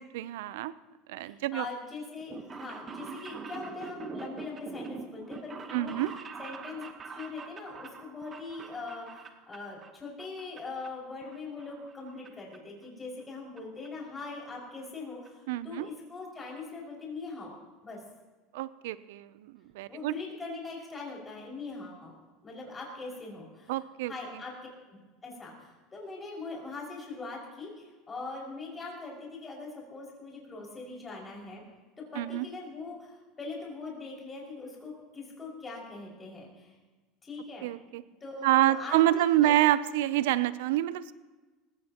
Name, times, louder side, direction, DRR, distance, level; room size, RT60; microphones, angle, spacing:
voice 1, 0.1-0.7 1.1-1.7 5.7-6.1 15.5-15.9 18.5-20.1 23.7-24.4 32.1-32.5 37.6-38.0 38.4-41.1, right 14 dB, 80° right, 16 dB, 0.6 m, -27 dB
voice 2, 1.2-6.1 6.4-17.5 17.8-18.0 19.9-22.1 22.4-23.7 24.0-25.0 25.2-31.6 32.0-36.7 37.2-37.7 38.2-39.6, left 3 dB, 20° left, -3 dB, 5.7 m, -41 dB
sound 1, 2.2-9.9 10.2-10.9 11.2-12.3 12.5-12.6 13.6-13.7 13.8-13.9 14.2-14.3 14.6-14.9 15.3-15.4 15.5-15.6, right 5 dB, 30° right, 1.2 m, -44 dB
19.0 x 16.0 x 3.0 m, 1.2 s
supercardioid pair, 110°, 0 cm